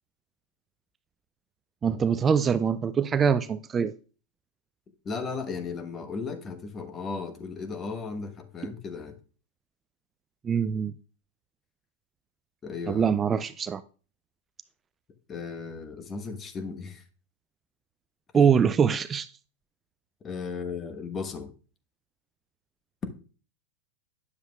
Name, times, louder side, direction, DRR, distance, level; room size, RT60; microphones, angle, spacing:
voice 1, 1.8-3.9 10.4-10.9 12.9-13.8 18.3-19.3, right 7 dB, 25° right, 0.3 m, -23 dB
voice 2, 5.0-9.2 12.6-13.1 15.3-17.0 18.3-18.5 20.2-21.5, left 4 dB, 25° left, 1.1 m, -36 dB
9.6 x 7.0 x 2.3 m
hypercardioid pair, 105°, 0 cm